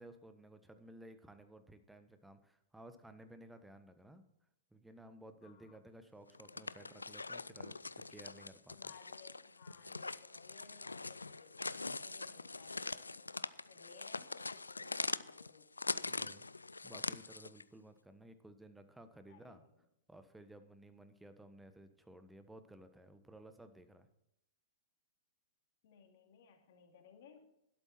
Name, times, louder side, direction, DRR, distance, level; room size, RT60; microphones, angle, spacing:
voice 1, 0.0-4.2 4.7-8.8 11.7-12.0 16.0-16.4 16.8-19.6 20.1-24.1, right 1 dB, 5° right, 9 dB, 1.3 m, -56 dB
voice 2, 5.4-5.8 8.7-11.8 12.0-13.3 13.7-16.1 19.3-19.9 25.8-27.5, left 6 dB, 55° left, 3 dB, 2.9 m, -61 dB
sound 1, 6.3-17.6, left 3 dB, 85° left, 0.4 m, -43 dB
12.0 x 12.0 x 4.5 m, 0.83 s
figure-of-eight pair, 105°, 0 cm